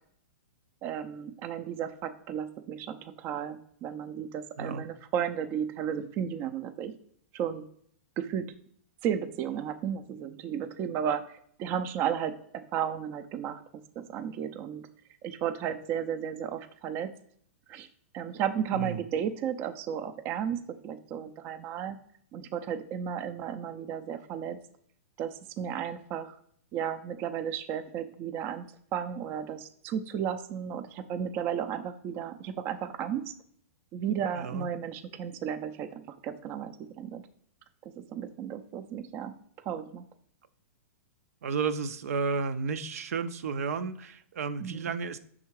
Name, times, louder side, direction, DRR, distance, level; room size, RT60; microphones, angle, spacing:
voice 1, 0.8-6.9 7.3-7.7 8.2-8.5 9.0-13.6 14.0-14.9 15.2-17.1 17.7-17.9 18.1-22.0 22.3-24.6 25.2-26.4 26.7-33.3 33.9-37.2 38.1-39.3 39.7-40.0 44.6-44.9, right 8 dB, 30° right, 9 dB, 0.4 m, -34 dB
voice 2, 34.3-34.7 41.4-45.2, right 5 dB, 80° right, 11 dB, 0.5 m, -32 dB
5.6 x 3.7 x 4.6 m, 0.64 s
hypercardioid pair, 145°, 8 cm